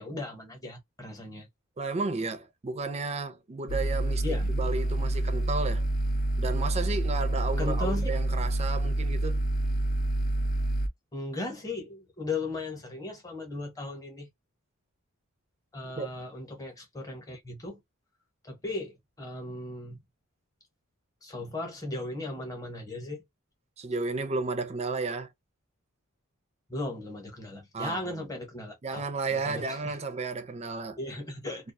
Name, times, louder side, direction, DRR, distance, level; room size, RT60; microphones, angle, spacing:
voice 1, 0.0-1.5 4.2-4.5 7.6-8.1 11.1-14.3 15.7-17.8 18.4-20.0 21.2-23.2 26.7-29.0 29.3-30.0 31.0-31.7, left 2 dB, 15° left, 0.9 m, -37 dB
voice 2, 1.8-5.8 6.4-9.4 16.0-16.1 23.8-25.3 27.7-28.0 28.8-31.0, right 3 dB, 30° right, 0.5 m, -33 dB
sound 1, 3.7-10.9, right 1 dB, 40° left, 0.4 m, -27 dB
2.3 x 2.2 x 2.6 m
head